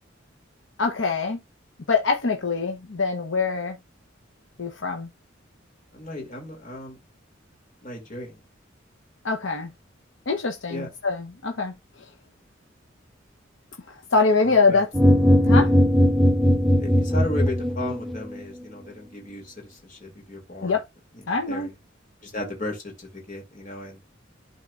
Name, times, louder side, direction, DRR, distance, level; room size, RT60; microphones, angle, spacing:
voice 1, 0.8-1.4 1.9-3.8 4.6-5.1 9.2-9.7 10.3-11.7 14.1-14.9 15.4-15.7 20.6-20.8 21.3-21.7, left 4 dB, 85° left, 0.9 m, -23 dB
voice 2, 5.9-7.0 7.8-8.4 10.7-10.9 14.4-14.8 16.8-20.8 21.1-21.7 22.2-24.0, left 2 dB, 40° left, 2.6 m, -35 dB
sound 1, 14.9-18.2, equal, ahead, 0.6 m, -18 dB
12.0 x 4.0 x 2.4 m
head